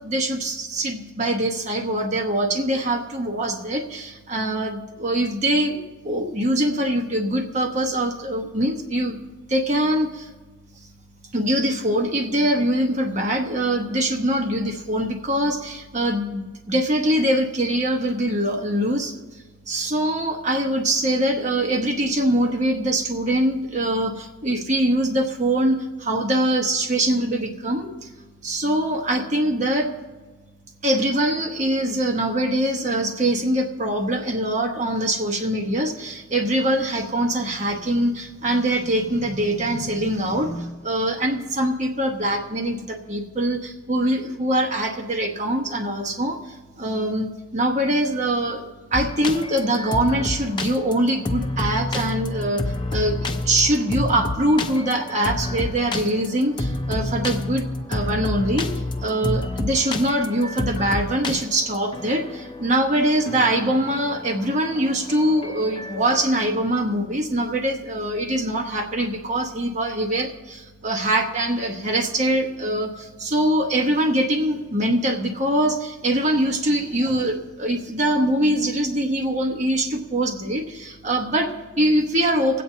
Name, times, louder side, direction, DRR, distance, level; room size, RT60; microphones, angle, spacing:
voice 1, 0.0-5.8 6.0-9.2 9.5-10.3 11.3-19.2 19.7-28.1 28.4-29.9 30.8-58.7 59.0-82.6, right 1 dB, 35° right, 1 dB, 1.0 m, -23 dB
sound 1, 48.9-66.4, left 2 dB, 20° left, 0.5 m, -29 dB
25.5 x 8.5 x 2.8 m, 1.3 s
head